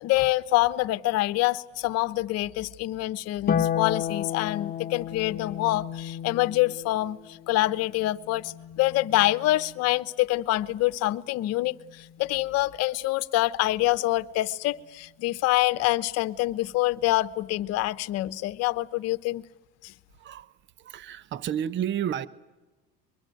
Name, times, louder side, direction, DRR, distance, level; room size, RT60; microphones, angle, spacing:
voice 1, 0.0-19.4 19.8-19.9, left 17 dB, 60° left, 1.1 m, -26 dB
Harp, 3.5-10.0 11.6-12.6, left 9 dB, 30° left, 1.2 m, -33 dB
voice 2, 20.2-20.5 20.8-22.3, right 9 dB, 40° right, 1.0 m, -31 dB
23.0 x 23.0 x 9.2 m
supercardioid pair, 105°, 29 cm